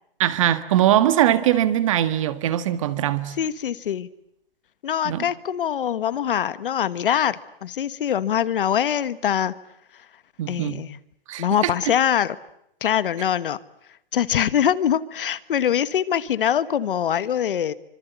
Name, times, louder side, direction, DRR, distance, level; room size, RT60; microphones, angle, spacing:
voice 1, 0.2-3.3 5.0-5.3 10.4-10.8 11.3-11.7, right 12 dB, 35° right, 13 dB, 1.6 m, -21 dB
voice 2, 3.4-4.1 4.8-9.5 10.5-11.0 11.4-12.4 12.8-13.6 14.1-17.7, left 9 dB, 65° left, 16 dB, 1.5 m, -23 dB
25.5 x 25.5 x 8.1 m, 0.76 s
hypercardioid pair, 175°, 29 cm